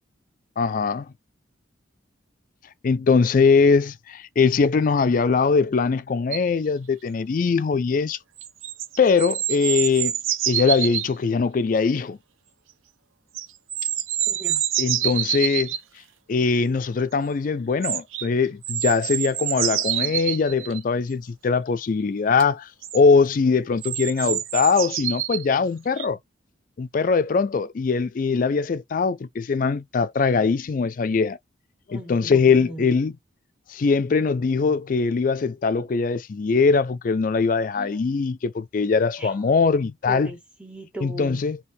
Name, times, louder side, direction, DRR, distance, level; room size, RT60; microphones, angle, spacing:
voice 1, 0.6-1.1 2.8-8.2 9.0-10.1 10.5-12.2 14.8-15.7 16.3-26.2 26.8-31.4 31.9-33.1 33.7-40.3 41.0-41.6, left 4 dB, 40° left, 0.3 m, -21 dB
sound 1, 6.3-6.4 8.4-11.1 13.4-15.8 17.8-18.3 18.6-20.8 22.4-22.5 22.8-23.0 23.8-25.5 26.0-26.1, right 11 dB, 85° right, 0.6 m, -27 dB
voice 2, 14.3-14.6 31.9-32.9 37.8-38.0 39.2-39.3 40.1-41.4, right 1 dB, 5° right, 1.4 m, -38 dB
3.4 x 2.8 x 4.1 m
head